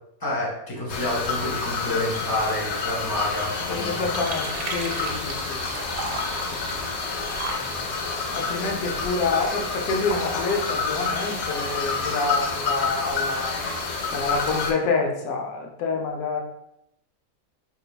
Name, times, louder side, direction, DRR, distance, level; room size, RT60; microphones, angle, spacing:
voice 1, 0.2-4.3, left 1 dB, 35° left, -4 dB, 0.3 m, -29 dB
sound 1, 0.9-14.7, left 4 dB, 65° left, 0.7 m, -28 dB
sound 2, 3.4-9.7, right 4 dB, 85° right, 1.1 m, -38 dB
voice 2, 3.7-5.6 6.0-6.6 7.5-8.0 8.3-13.6 14.1-16.4, left 4 dB, 90° left, 1 dB, 1.2 m, -28 dB
3.9 x 3.1 x 2.2 m, 0.79 s
omnidirectional pair, 1.5 m